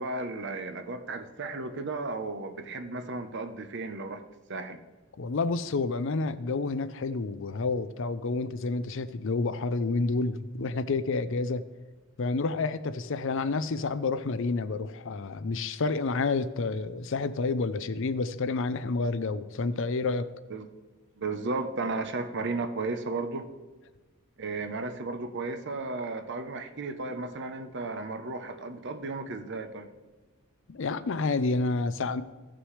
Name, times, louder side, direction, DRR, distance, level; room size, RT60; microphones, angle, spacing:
voice 1, 0.0-4.2 4.5-4.8 20.5-20.7 21.2-23.5 24.4-29.9, right 3 dB, 60° right, 0.8 m, -34 dB
voice 2, 5.2-11.6 12.2-20.3 30.7-32.2, left 3 dB, 65° left, 0.5 m, -29 dB
16.0 x 6.1 x 3.2 m
head